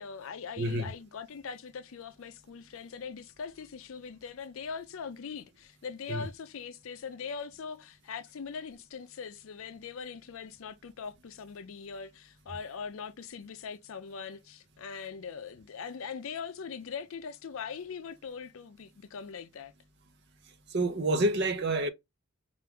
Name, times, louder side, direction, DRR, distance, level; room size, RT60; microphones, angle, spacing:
voice 1, 0.0-19.7, left 6 dB, 70° left, 0.4 m, -41 dB
voice 2, 0.6-0.9 6.1-6.3 20.7-21.9, right 1 dB, 50° right, 0.7 m, -28 dB
4.5 x 2.5 x 3.4 m
head